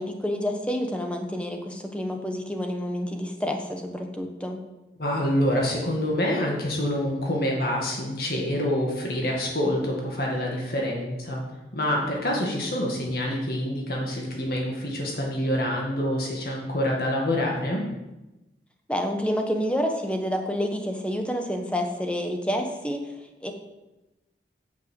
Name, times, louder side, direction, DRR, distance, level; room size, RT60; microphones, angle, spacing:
voice 1, 0.0-4.6 18.9-23.1 23.4-23.5, equal, 5° left, 4 dB, 1.2 m, -28 dB
voice 2, 5.0-11.4 11.7-17.8, left 1 dB, 55° left, -2 dB, 2.0 m, -26 dB
9.1 x 7.6 x 7.8 m, 1.0 s
head